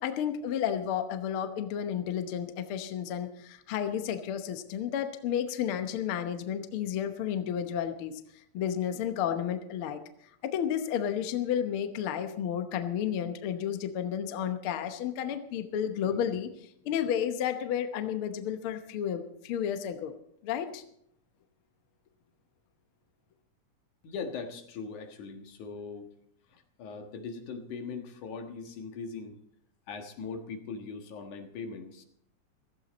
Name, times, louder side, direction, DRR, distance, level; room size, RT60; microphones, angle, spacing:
voice 1, 0.0-8.2 8.5-10.0 10.4-16.5 16.8-20.1 20.4-20.8, left 9 dB, 60° left, 8 dB, 1.5 m, -32 dB
voice 2, 24.0-26.1 26.5-29.4 29.9-32.0, left 5 dB, 80° left, 4 dB, 3.0 m, -40 dB
16.0 x 15.0 x 4.2 m, 0.71 s
omnidirectional pair, 3.5 m